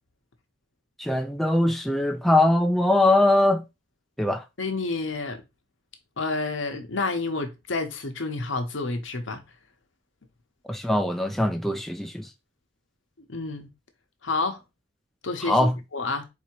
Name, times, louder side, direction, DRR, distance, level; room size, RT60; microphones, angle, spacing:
voice 1, 1.0-3.6 4.2-4.4 10.7-12.3 15.4-15.8, left 1 dB, ahead, 0.4 m, -22 dB
voice 2, 4.6-5.4 6.2-9.4 13.3-13.7 14.2-14.6 15.2-16.3, left 3 dB, 80° left, 1.0 m, -29 dB
4.2 x 2.8 x 4.5 m
head